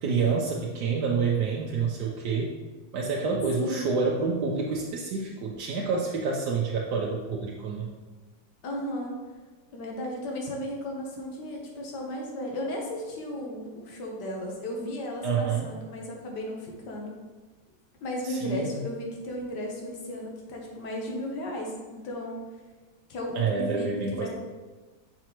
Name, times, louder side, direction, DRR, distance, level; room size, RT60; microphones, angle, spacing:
voice 1, 0.0-2.5 2.9-7.9 15.2-15.7 18.2-18.8 23.4-24.3, right 5 dB, 80° right, -1 dB, 1.2 m, -28 dB
voice 2, 3.6-4.0 8.6-9.1 9.7-17.1 18.0-22.4 23.1-24.3, left 1 dB, 85° left, 0 dB, 1.7 m, -35 dB
5.9 x 5.5 x 3.0 m, 1.3 s
omnidirectional pair, 1.8 m